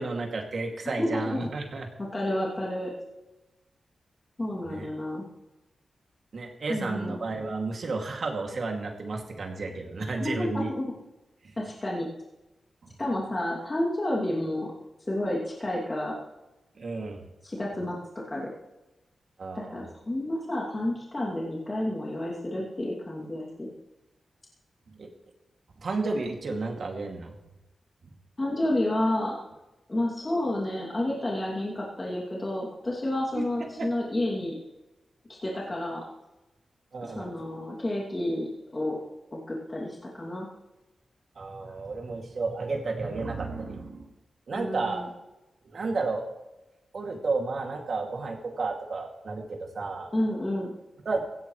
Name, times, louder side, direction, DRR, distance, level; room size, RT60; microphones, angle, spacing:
voice 1, 0.0-1.9 4.7-4.9 6.3-10.7 11.4-11.5 12.8-12.9 16.8-17.2 19.4-19.9 25.0-25.1 25.8-27.3 33.3-33.4 33.8-33.9 36.9-37.3 41.4-44.1 44.5-45.0 45.6-46.3 46.9-50.1 51.0-51.2, right 3 dB, 55° right, 2 dB, 2.5 m, -32 dB
voice 2, 0.8-1.5 2.1-2.9 4.4-5.3 6.7-7.2 10.2-10.9 11.6-12.1 13.0-14.7 15.1-16.2 17.4-18.0 18.3-18.5 19.5-23.7 28.4-29.3 29.9-34.6 35.3-36.0 37.0-39.0 39.3-40.5 44.5-45.1 50.1-50.7, left 1 dB, 25° left, -4 dB, 2.7 m, -30 dB
17.0 x 16.5 x 3.2 m, 1.0 s
wide cardioid pair, 140°, 0 cm